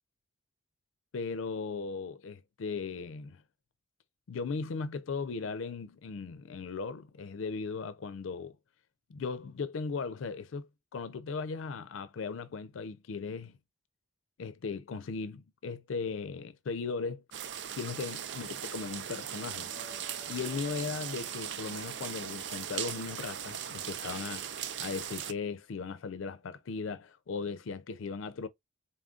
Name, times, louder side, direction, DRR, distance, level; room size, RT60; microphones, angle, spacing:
voice 1, 1.1-3.4 4.3-8.6 9.1-13.6 14.4-17.2 17.8-19.7 20.3-28.5, left 4 dB, 90° left, 0.4 m, -37 dB
sound 1, 17.3-25.3, right 9 dB, 65° right, 0.5 m, -39 dB
sound 2, 19.7-25.9 26.3-26.4, right 1 dB, 50° left, 1.1 m, -56 dB
4.0 x 3.7 x 2.4 m
head